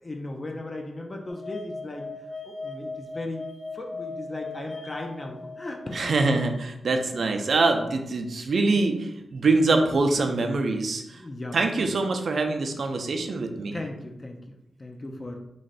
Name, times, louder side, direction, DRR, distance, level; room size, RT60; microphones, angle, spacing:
voice 1, 0.0-2.1 2.4-6.1 11.1-11.6 11.8-11.9 13.7-15.4, left 2 dB, 30° left, 2 dB, 0.4 m, -37 dB
sound 1, 1.3-6.4, left 3 dB, 75° left, 0.8 m, -39 dB
voice 2, 5.9-11.2 11.5-13.8, right 3 dB, 60° right, 5 dB, 0.5 m, -24 dB
3.1 x 2.6 x 3.9 m, 0.84 s
wide cardioid pair, 130°, 0 cm